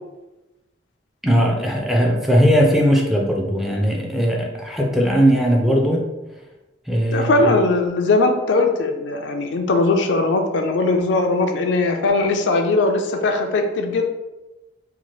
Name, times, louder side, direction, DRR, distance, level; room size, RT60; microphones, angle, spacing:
voice 1, 1.2-6.1 6.9-7.4, equal, ahead, 0 dB, 0.4 m, -18 dB
voice 2, 7.1-14.0, left 2 dB, 70° left, 5 dB, 0.4 m, -19 dB
2.8 x 2.2 x 3.0 m, 1.0 s
head